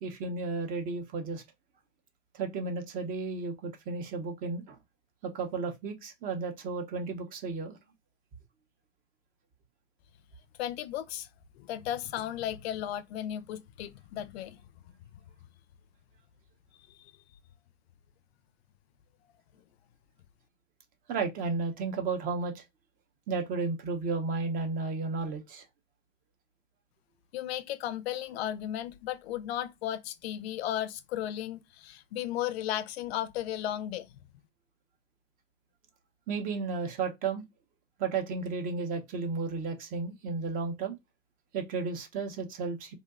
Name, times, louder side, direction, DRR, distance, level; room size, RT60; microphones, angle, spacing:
voice 1, 0.0-1.4 2.3-4.8 5.2-7.8 21.1-22.6 23.3-25.6 36.3-37.4 38.0-41.0 41.5-42.9, right 4 dB, 25° right, 0.5 m, -33 dB
voice 2, 10.6-11.3 11.5-14.6 16.9-17.1 27.3-34.2, left 12 dB, 55° left, 0.5 m, -35 dB
2.7 x 2.1 x 2.3 m
hypercardioid pair, 110°, 37 cm